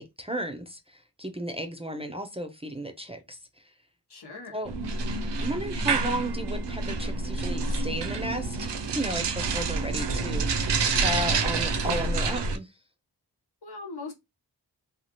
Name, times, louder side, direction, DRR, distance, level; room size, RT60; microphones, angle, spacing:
voice 1, 0.0-3.4 4.5-4.7 5.4-12.7, right 1 dB, 15° right, 0.5 m, -34 dB
voice 2, 4.1-4.6 13.6-14.1, left 3 dB, 65° left, 1.0 m, -40 dB
sound 1, 4.6-12.6, right 4 dB, 80° right, 0.6 m, -28 dB
2.8 x 2.3 x 2.9 m
wide cardioid pair, 65°, 41 cm